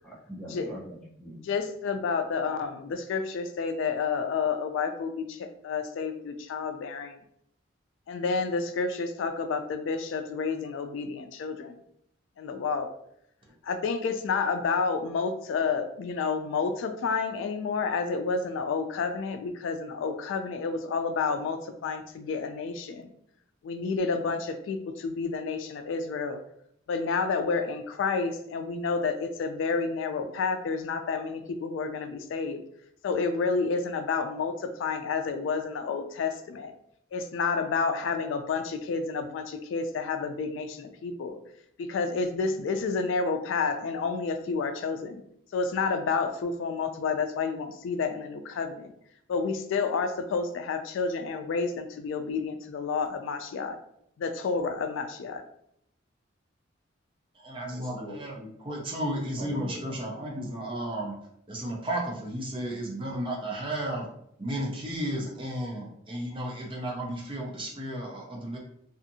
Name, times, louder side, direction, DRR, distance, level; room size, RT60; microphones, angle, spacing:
voice 1, 0.0-1.4 57.7-58.5 59.4-59.9, equal, 5° left, -6 dB, 0.8 m, -42 dB
voice 2, 1.4-7.2 8.1-11.7 12.4-12.9 13.6-23.1 23.6-26.4 26.9-32.6 33.0-36.7 37.1-41.4 41.8-45.2 45.5-48.9 49.3-53.8 54.2-55.4, left 4 dB, 75° left, 7 dB, 0.3 m, -30 dB
voice 3, 57.4-58.3 58.7-61.1 61.5-64.1 64.4-68.6, right 1 dB, 25° right, -1 dB, 0.5 m, -33 dB
2.6 x 2.4 x 2.6 m, 0.71 s
head